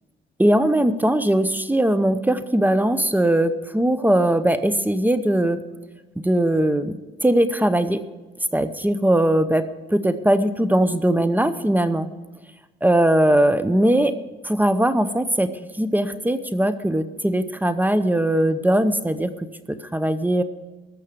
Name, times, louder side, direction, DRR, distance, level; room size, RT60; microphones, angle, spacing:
voice 1, 0.4-5.6 6.2-8.0 8.5-9.6 9.9-12.1 12.8-14.1 14.4-15.5 15.8-19.5 19.9-20.4, right 1 dB, 10° right, 12 dB, 0.8 m, -20 dB
14.5 x 6.4 x 6.9 m, 1.2 s
cardioid pair, 90°, 20 cm